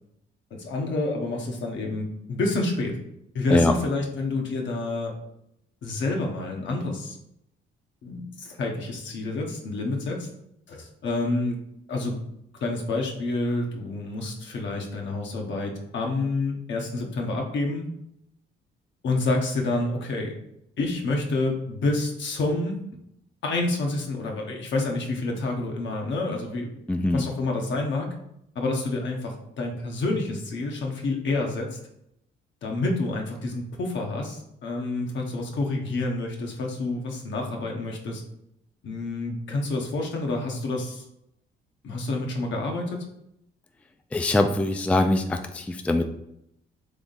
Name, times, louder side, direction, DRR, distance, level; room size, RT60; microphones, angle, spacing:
voice 1, 0.5-3.0 3.3-5.1 5.8-7.2 8.0-10.3 10.7-11.6 11.9-12.2 12.6-17.9 19.0-20.3 20.8-22.8 23.4-26.7 27.0-28.1 28.5-31.8 32.6-38.2 38.8-41.0 41.8-43.1, left 2 dB, 70° left, 1 dB, 1.0 m, -28 dB
voice 2, 26.9-27.3 44.1-46.0, left 2 dB, 5° left, 6 dB, 0.3 m, -22 dB
3.5 x 3.5 x 4.0 m, 0.77 s
cardioid pair, 90°, 20 cm